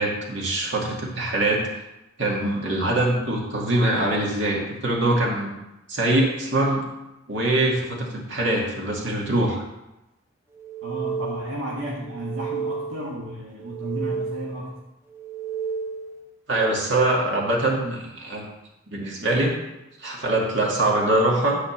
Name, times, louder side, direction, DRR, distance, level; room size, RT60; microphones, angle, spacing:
voice 1, 0.0-1.7 2.2-5.5 5.9-6.9 7.3-9.6 16.5-18.4 18.9-19.6 20.0-21.6, right 1 dB, 60° right, -2 dB, 2.2 m, -23 dB
sound 1, 10.5-11.7 12.0-13.2 13.5-14.7 15.1-16.2, right 6 dB, 15° right, 0.9 m, -32 dB
voice 2, 10.8-14.8, right 1 dB, 80° right, -4 dB, 1.6 m, -33 dB
10.5 x 4.3 x 7.2 m, 0.95 s
head